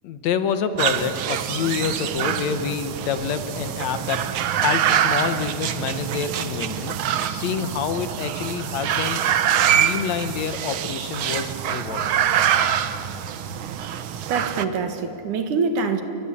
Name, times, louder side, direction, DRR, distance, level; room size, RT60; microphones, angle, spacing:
voice 1, 0.0-4.3 4.6-7.0 7.3-9.2 9.6-12.1, left 7 dB, 70° left, 10 dB, 2.2 m, -27 dB
sound 1, 0.8-14.7, right 9 dB, 65° right, 1.3 m, -25 dB
voice 2, 14.3-16.0, right 4 dB, 85° right, 7 dB, 3.3 m, -24 dB
30.0 x 22.5 x 8.5 m, 2.7 s
omnidirectional pair, 3.5 m